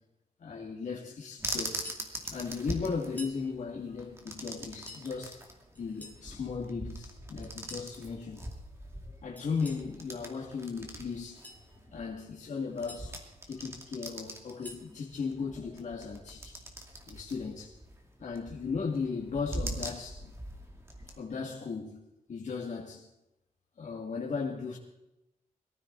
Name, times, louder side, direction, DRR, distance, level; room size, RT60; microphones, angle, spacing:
voice 1, 0.4-1.8 2.2-5.4 5.7-8.4 9.2-11.5 11.9-13.2 13.5-16.6 17.1-17.7 18.2-20.3 21.2-23.1 23.8-24.8, left 5 dB, 55° left, 2.6 m, -36 dB
sound 1, 1.4-21.2, right 1 dB, 20° right, 2.5 m, -43 dB
sound 2, 1.7-2.1 3.0-3.4 4.6-5.1 5.7-6.2 7.4-7.9 9.4-9.9 11.2-11.6 12.5-13.0 14.3-14.9, left 1 dB, 10° left, 2.8 m, -49 dB
22.5 x 15.0 x 4.2 m
wide cardioid pair, 160°, 15 cm